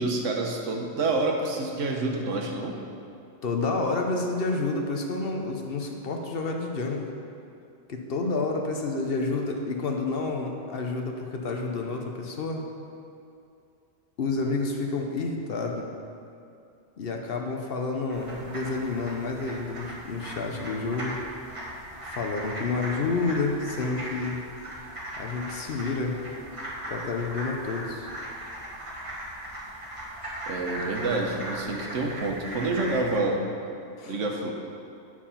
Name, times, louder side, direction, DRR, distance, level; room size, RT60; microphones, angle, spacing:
voice 1, 0.0-2.8 30.5-33.4 34.1-34.5, right 2 dB, 85° right, 1 dB, 1.3 m, -28 dB
voice 2, 3.4-7.1 7.9-12.6 14.2-15.9 17.0-21.2 22.0-24.4 25.2-26.2 26.9-28.1 34.0-34.2, left 3 dB, 55° left, 2 dB, 0.9 m, -29 dB
sound 1, 18.1-33.2, right 1 dB, 25° right, 1.4 m, -38 dB
8.8 x 4.8 x 5.6 m, 2.5 s
omnidirectional pair, 1.2 m